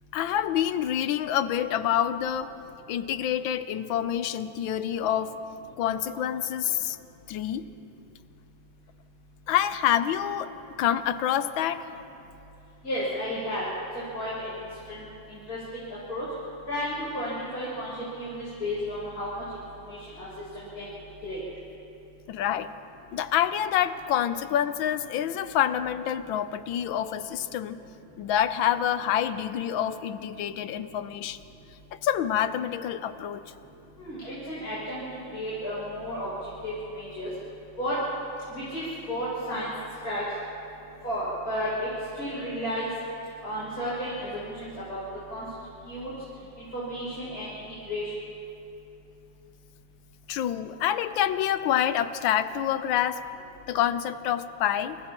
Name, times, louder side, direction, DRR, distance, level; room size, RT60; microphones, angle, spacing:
voice 1, 0.1-2.5 2.9-5.4 5.8-7.0 7.3-7.7 9.5-10.5 10.8-11.9 22.3-22.7 23.1-27.8 28.2-31.4 31.9-33.4 50.3-53.2 53.7-55.0, left 10 dB, 85° left, 12 dB, 1.5 m, -27 dB
voice 2, 12.8-13.8 14.1-15.8 16.1-16.2 16.7-19.4 19.9-20.3 20.5-20.9 21.2-21.4 34.0-35.0 35.3-36.3 36.6-37.3 37.8-38.0 38.5-39.7 40.0-40.2 41.0-41.9 42.1-42.9 43.4-45.0 45.3-45.4 45.9-46.1 46.7-48.1, equal, 50° left, -9 dB, 7.4 m, -33 dB
30.0 x 29.0 x 3.0 m, 2.8 s
omnidirectional pair, 2.1 m